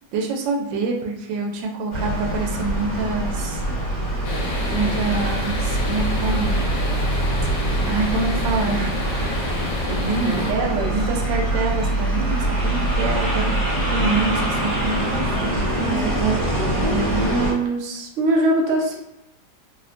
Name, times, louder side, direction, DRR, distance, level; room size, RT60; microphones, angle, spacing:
voice 1, 0.1-3.6 4.7-6.6 7.9-8.9 9.9-10.6 10.9-13.5 13.9-15.6 16.9-18.1, right 3 dB, 90° right, 1 dB, 1.3 m, -26 dB
sound 1, 1.9-17.5, right 1 dB, 45° left, 1.3 m, -24 dB
sound 2, 4.2-10.5, left 1 dB, 75° left, 1.2 m, -30 dB
voice 2, 10.2-10.9 15.7-16.7 18.2-19.0, right 2 dB, 75° right, 0 dB, 0.7 m, -22 dB
3.1 x 2.1 x 2.4 m, 0.84 s
omnidirectional pair, 1.9 m